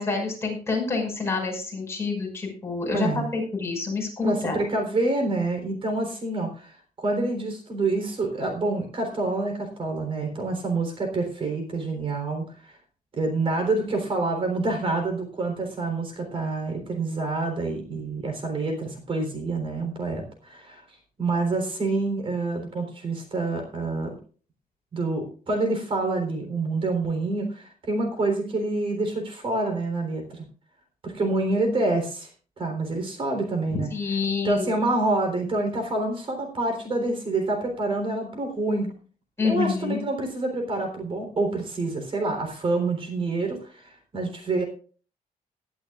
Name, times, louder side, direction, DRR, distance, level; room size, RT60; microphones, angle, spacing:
voice 1, 0.0-4.6 33.9-34.7 39.4-40.0, left 4 dB, 15° left, 0 dB, 5.7 m, -27 dB
voice 2, 2.9-3.3 4.2-12.8 13.2-20.8 21.2-24.2 24.9-30.4 31.0-32.3 32.6-33.9 34.4-38.9 39.4-44.6, right 2 dB, 35° right, 4 dB, 3.7 m, -27 dB
19.5 x 11.5 x 2.4 m, 0.39 s
wide cardioid pair, 165°, 15 cm